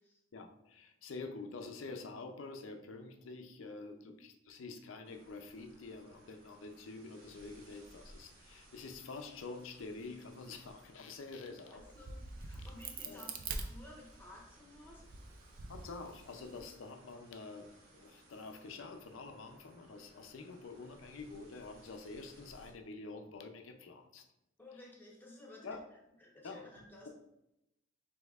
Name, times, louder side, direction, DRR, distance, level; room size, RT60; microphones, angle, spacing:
voice 1, 0.3-11.8 13.0-13.2 15.7-24.3 25.6-25.8 26.4-26.7, left 3 dB, 80° left, 6 dB, 0.5 m, -47 dB
sound 1, 5.0-22.7, right 1 dB, 90° right, 1.1 m, -62 dB
voice 2, 11.7-15.2 24.6-25.8 26.2-27.1, left 1 dB, 10° left, -3 dB, 1.0 m, -55 dB
Crack, 11.8-14.4 15.0-16.6, right 4 dB, 45° right, 0.4 m, -45 dB
5.1 x 3.5 x 2.4 m, 0.88 s
head